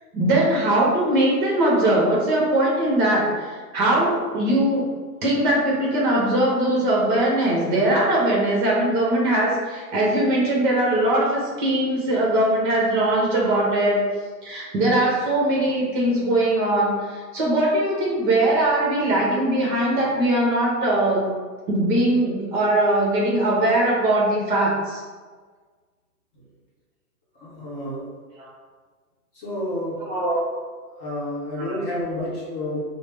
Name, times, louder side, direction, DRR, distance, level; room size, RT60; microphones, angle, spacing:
voice 1, 0.1-4.8 5.2-14.0 14.4-21.3 21.7-25.0 28.4-28.5 30.1-30.5 31.6-31.7, right 1 dB, 30° right, -3 dB, 1.0 m, -21 dB
voice 2, 27.3-28.1 29.3-30.1 31.0-32.8, left 1 dB, 25° left, -7 dB, 0.9 m, -30 dB
4.9 x 2.0 x 3.4 m, 1.5 s
hypercardioid pair, 155°, 47 cm